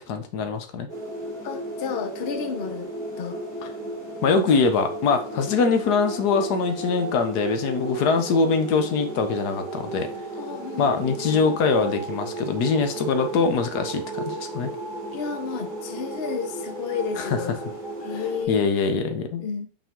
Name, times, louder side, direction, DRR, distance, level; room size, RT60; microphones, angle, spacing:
voice 1, 0.1-0.9 4.2-10.1 10.8-14.7 17.2-17.4 18.5-19.4, left 4 dB, 90° left, 8 dB, 1.4 m, -23 dB
sound 1, 0.9-18.5, right 2 dB, 10° left, 2.3 m, -34 dB
voice 2, 1.4-2.9 3.2-3.4 10.3-11.5 15.1-17.6 18.0-18.6 19.4-19.7, left 6 dB, 45° left, 7 dB, 0.9 m, -31 dB
5.6 x 4.9 x 3.6 m, 0.40 s
omnidirectional pair, 1.7 m